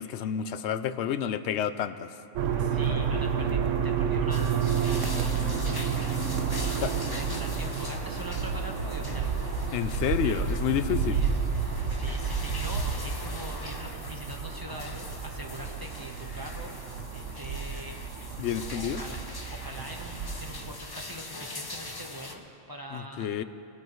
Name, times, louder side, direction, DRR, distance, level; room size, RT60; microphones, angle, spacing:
voice 1, 0.0-2.1 6.8-6.9 9.7-11.2 18.4-19.0 22.9-23.4, left 9 dB, 70° left, 12 dB, 0.8 m, -29 dB
sound 1, 2.3-20.8, right 6 dB, 80° right, 1.1 m, -30 dB
voice 2, 2.5-9.5 10.2-10.7 11.0-11.3 11.9-16.8 17.1-19.2 19.5-23.4, equal, 20° right, 1 dB, 0.9 m, -43 dB
sound 2, 4.3-22.4, left 2 dB, 25° left, 0.6 m, -42 dB
20.0 x 13.0 x 3.1 m, 2.6 s
omnidirectional pair, 1.3 m